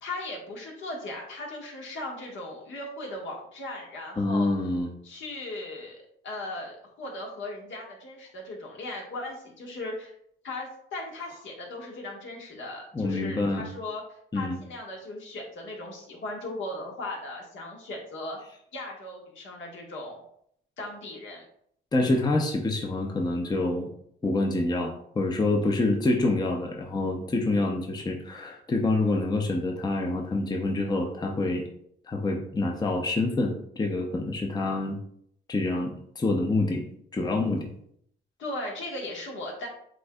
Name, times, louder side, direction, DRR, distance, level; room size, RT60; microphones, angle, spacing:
voice 1, 0.0-4.5 5.0-10.1 10.4-14.0 14.3-18.4 18.7-20.2 20.8-21.4 38.4-39.7, left 2 dB, 70° left, -1 dB, 1.5 m, -37 dB
voice 2, 4.2-4.9 12.9-13.7 14.3-14.6 21.9-23.9 24.2-31.6 32.1-35.0 35.5-36.8 37.1-37.7, left 2 dB, 20° left, 1 dB, 0.6 m, -26 dB
7.6 x 2.6 x 2.3 m, 0.69 s
cardioid pair, 90°, 20 cm